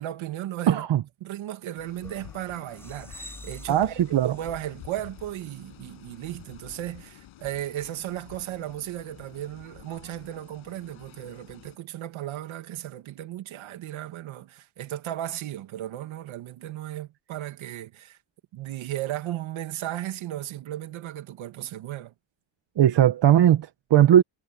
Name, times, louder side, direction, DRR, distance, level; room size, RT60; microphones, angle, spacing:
voice 1, 0.0-0.9 1.2-18.2 18.5-22.1, right 13 dB, 75° right, 2.5 m, -35 dB
voice 2, 0.7-1.0 3.7-4.3 22.8-24.2, right 11 dB, 60° right, 1.6 m, -19 dB
sound 1, 1.8-11.8, left 13 dB, 80° left, 6.9 m, -49 dB
sound 2, 2.0-7.0, left 1 dB, 5° left, 7.5 m, -49 dB
cardioid pair, 125°, 48 cm